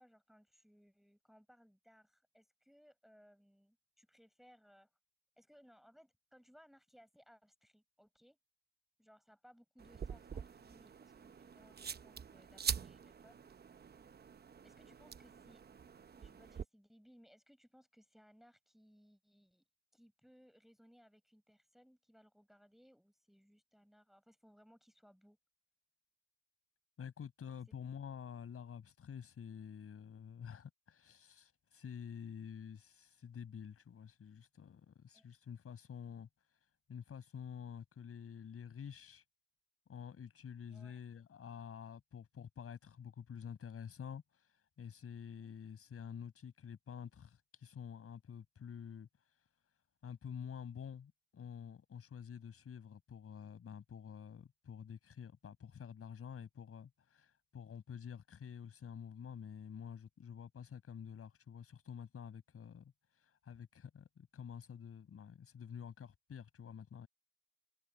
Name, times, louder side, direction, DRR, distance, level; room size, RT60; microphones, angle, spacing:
voice 1, 0.0-4.9 5.4-8.4 9.0-13.8 14.6-15.6 16.2-19.6 19.9-25.4 35.1-35.3 40.6-41.0, equal, ahead, 5.0 m, -65 dB
sound 1, 9.8-16.6, right 7 dB, 30° right, 0.9 m, -45 dB
voice 2, 27.0-36.3 36.9-39.2 39.9-49.1 50.0-67.1, left 7 dB, 50° left, 7.1 m, -49 dB
cardioid pair, 85°, 30 cm